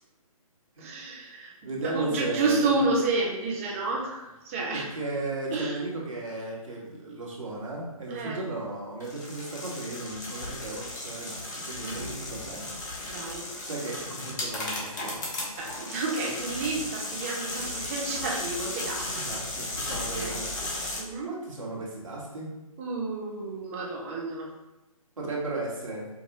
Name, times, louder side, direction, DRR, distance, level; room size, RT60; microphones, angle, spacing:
voice 1, 0.8-4.9 5.5-5.8 8.1-8.4 11.8-12.1 13.1-13.5 15.6-19.3 19.6-19.8 20.2-20.4 21.0-21.3 22.8-24.5, right 3 dB, 25° right, -2 dB, 0.7 m, -30 dB
voice 2, 1.6-2.7 4.7-12.7 13.6-15.2 19.1-20.7 21.3-22.5 25.2-26.1, right 2 dB, 60° right, -4 dB, 1.4 m, -35 dB
sound 1, 9.0-21.0, left 2 dB, 30° left, 0.9 m, -35 dB
4.8 x 2.6 x 2.8 m, 1.0 s
figure-of-eight pair, 140°, 19 cm